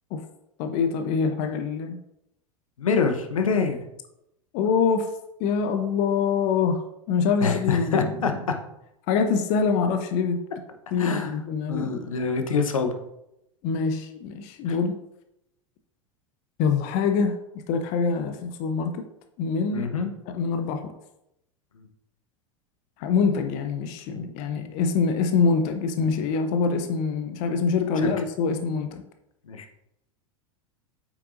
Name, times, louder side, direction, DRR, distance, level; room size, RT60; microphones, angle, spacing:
voice 1, 0.6-2.0 4.5-5.1 5.4-8.3 9.1-10.4 10.9-12.0 13.6-15.0 16.6-17.4 17.7-19.0 19.4-19.9 20.3-20.9 23.0-29.0, left 5 dB, 45° left, 7 dB, 0.7 m, -25 dB
voice 2, 2.8-3.8 7.4-8.3 11.0-11.3 11.7-12.9 14.7-14.8 19.7-20.1 21.8-21.9 28.0-28.1 29.5-29.7, left 5 dB, 75° left, 6 dB, 0.9 m, -25 dB
8.1 x 6.0 x 2.5 m, 0.84 s
figure-of-eight pair, 85°, 17 cm